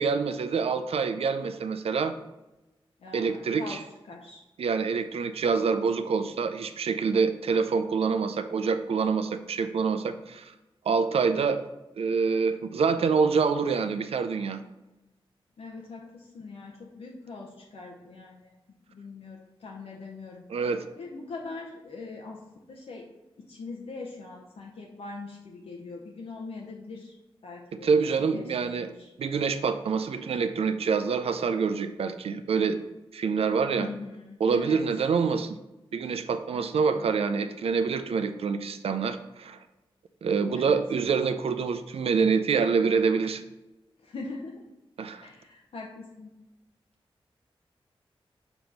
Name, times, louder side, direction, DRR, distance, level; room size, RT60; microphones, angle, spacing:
voice 1, 0.0-2.1 3.1-3.8 4.6-10.5 10.9-11.6 12.0-14.6 20.5-20.9 27.8-28.9 29.2-32.8 33.1-33.9 34.4-35.6 35.9-39.6 40.2-43.4 45.0-45.3, right 5 dB, 85° right, 9 dB, 0.4 m, -26 dB
voice 2, 3.0-4.4 15.6-18.5 18.9-20.4 21.0-23.1 23.4-27.2 27.4-29.1 33.8-34.9 36.5-37.1 40.5-40.8 44.0-44.6 45.2-46.3, left 3 dB, 80° left, -1 dB, 0.7 m, -42 dB
6.8 x 3.0 x 5.3 m, 1.0 s
wide cardioid pair, 105°, 10 cm